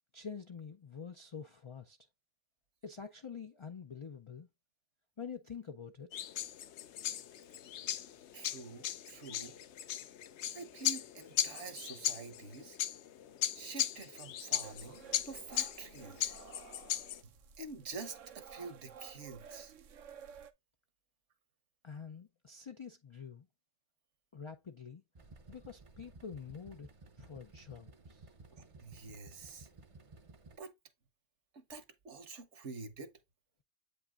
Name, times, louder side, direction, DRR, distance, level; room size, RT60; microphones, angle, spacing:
voice 1, 0.1-2.0 2.8-4.5 5.2-6.1 21.8-23.5 24.3-25.0 25.5-26.9 27.2-28.3, left 6 dB, 50° left, 0.3 m, -47 dB
sound 1, 6.1-17.2, left 11 dB, 75° left, 0.9 m, -38 dB
voice 2, 8.3-9.6 10.5-12.8 13.5-16.4 17.2-19.7 28.5-29.7 30.6-30.7 31.5-33.1, right 4 dB, 70° right, 1.4 m, -47 dB
sound 2, 14.6-20.5, right 7 dB, 90° right, 1.1 m, -54 dB
sound 3, 25.1-30.6, right 3 dB, 35° right, 0.6 m, -56 dB
8.3 x 5.5 x 2.4 m
omnidirectional pair, 1.2 m